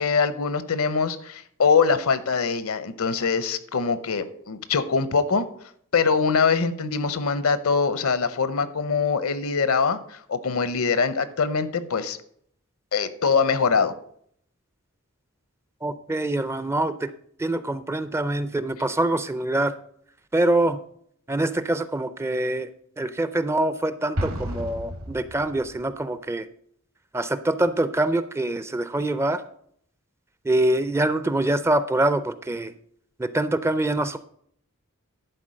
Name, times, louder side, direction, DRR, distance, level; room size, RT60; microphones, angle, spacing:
voice 1, 0.0-5.5 5.9-12.2 12.9-14.0, left 5 dB, 75° left, 14 dB, 0.7 m, -23 dB
voice 2, 15.8-17.1 17.4-19.7 20.3-20.8 21.3-22.7 23.0-26.5 27.1-29.4 30.4-32.7 33.2-34.2, right 1 dB, 10° right, 13 dB, 0.4 m, -24 dB
Explosion, 24.2-25.9, equal, 75° right, 1.8 m, -32 dB
11.0 x 4.4 x 6.4 m, 0.65 s
head